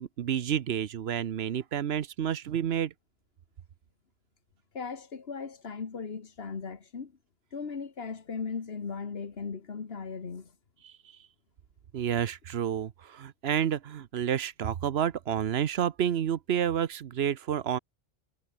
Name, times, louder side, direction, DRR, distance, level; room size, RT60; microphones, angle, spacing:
voice 1, 0.0-2.9 10.8-10.9 11.9-17.8, right 9 dB, 75° right, 1.0 m, -29 dB
voice 2, 4.7-7.1 7.5-10.5, left 5 dB, 65° left, 1.7 m, -37 dB
omnidirectional pair, 1.1 m